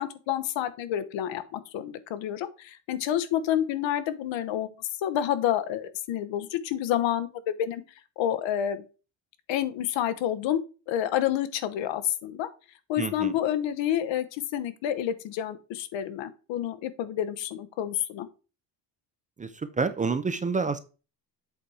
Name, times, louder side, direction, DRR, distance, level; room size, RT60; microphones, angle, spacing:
voice 1, 0.0-4.7 5.0-7.8 8.2-8.8 9.5-10.6 10.9-12.5 12.9-18.3, left 11 dB, 90° left, 11 dB, 1.0 m, -29 dB
voice 2, 13.0-13.3 19.4-20.8, right 4 dB, 20° right, 11 dB, 0.4 m, -28 dB
8.0 x 4.7 x 4.2 m, 0.33 s
cardioid pair, 155°, 44 cm